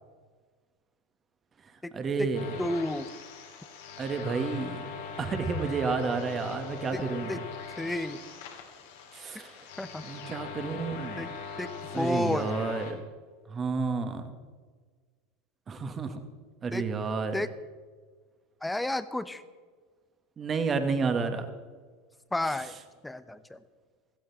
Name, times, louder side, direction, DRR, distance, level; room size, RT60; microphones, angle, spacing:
voice 1, 1.9-2.6 4.0-4.8 5.2-7.4 9.1-9.6 10.0-11.3 11.9-13.0 13.5-14.3 15.7-16.2 16.6-17.4 20.4-21.5, right 4 dB, 30° right, 7 dB, 2.1 m, -30 dB
sound 1, 2.3-12.9, left 6 dB, 65° left, 2.9 m, -41 dB
voice 2, 2.6-3.1 6.9-7.4 7.8-8.2 9.8-10.0 11.2-11.3 11.6-11.7 11.9-12.5 16.7-16.9 17.3-17.5 18.6-19.4 22.3-22.7 23.0-23.6, left 1 dB, 5° left, 13 dB, 1.0 m, -31 dB
16.5 x 15.5 x 4.3 m, 1.5 s
hypercardioid pair, 80°, 0 cm